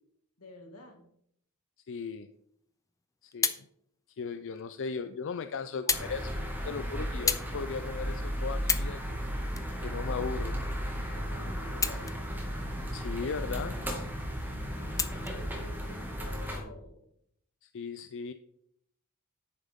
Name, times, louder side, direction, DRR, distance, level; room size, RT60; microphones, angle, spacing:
voice 1, 0.4-1.1 11.1-12.2 14.7-17.1, left 1 dB, 85° left, 3 dB, 2.4 m, -49 dB
voice 2, 1.9-2.3 3.2-3.5 4.2-9.2 9.8-10.5 12.9-13.8 17.6-18.3, left 5 dB, 60° left, 10 dB, 0.5 m, -37 dB
sound 1, 2.9-3.7 4.6-4.7 5.9-6.1 6.4-6.7 7.3-7.5 8.0-8.1 8.6-9.0 9.5-10.5 11.7-12.4 12.8-12.9 15.0-15.4 16.3-16.4, left 5 dB, 15° left, 0.6 m, -31 dB
sound 2, 5.9-16.6, equal, 10° right, 2.0 m, -35 dB
10.5 x 9.1 x 3.7 m, 0.71 s
head